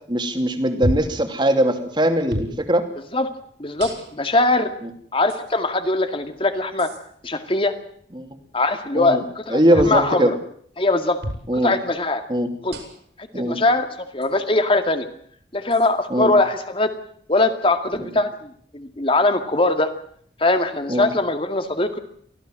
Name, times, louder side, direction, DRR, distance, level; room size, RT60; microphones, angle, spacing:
voice 1, 0.1-2.8 8.1-8.3 8.9-9.2 9.5-10.3 11.5-11.7 12.3-12.5 13.3-13.6 16.1-16.3 20.9-21.1, right 1 dB, 25° right, 6 dB, 2.7 m, -20 dB
sound 1, 0.8-1.2 2.3-2.6 3.8-4.3 5.3-5.4 6.8-7.0 9.7-10.0 11.2-11.5 12.7-13.1 14.2-14.3 15.7-15.9, equal, 75° right, 5.9 m, -29 dB
voice 2, 3.6-4.7 5.1-6.9 7.2-7.7 8.5-10.3 10.8-11.2 11.5-12.2 12.6-12.8 13.2-15.1 15.5-16.9 17.3-19.9 20.4-22.0, left 2 dB, 30° left, 8 dB, 2.2 m, -21 dB
24.0 x 16.0 x 7.6 m, 0.63 s
head